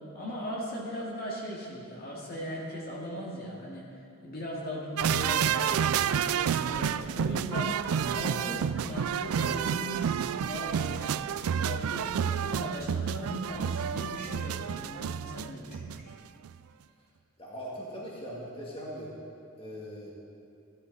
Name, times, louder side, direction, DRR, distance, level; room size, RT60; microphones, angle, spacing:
voice 1, 0.1-3.9 4.2-6.1 6.5-7.8 8.1-11.2 11.5-16.1, equal, 45° left, -5 dB, 2.4 m, -38 dB
sound 1, 5.0-16.2 16.4-16.6, right 8 dB, 80° right, 0.4 m, -30 dB
voice 2, 17.4-19.1 19.6-20.1, equal, 25° left, -5 dB, 2.4 m, -40 dB
16.0 x 12.0 x 4.2 m, 2.6 s
head